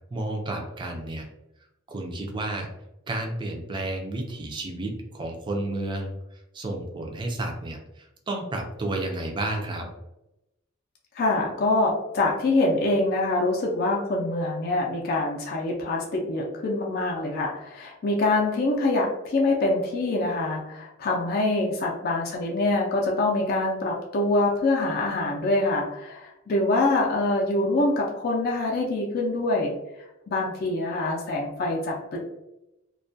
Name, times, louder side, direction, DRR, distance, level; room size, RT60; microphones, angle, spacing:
voice 1, 0.1-1.3 1.9-2.7 3.1-9.9, right 2 dB, 25° right, 1 dB, 0.4 m, -31 dB
voice 2, 11.1-29.7 30.3-32.2, left 2 dB, 50° left, -1 dB, 0.4 m, -25 dB
2.3 x 2.1 x 2.5 m, 0.92 s
head